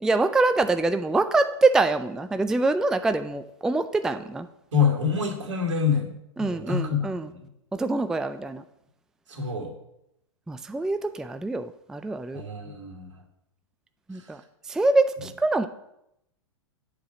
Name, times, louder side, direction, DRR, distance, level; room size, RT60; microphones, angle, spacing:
voice 1, 0.0-4.5 6.4-7.3 7.7-8.6 10.5-12.4 14.1-14.4 14.7-15.7, right 3 dB, 5° right, 10 dB, 0.3 m, -24 dB
voice 2, 4.7-7.4 9.3-9.7 12.3-13.2 14.1-14.2, left 6 dB, 75° right, 1 dB, 2.5 m, -27 dB
8.4 x 4.8 x 7.5 m, 0.82 s
hypercardioid pair, 110°, 16 cm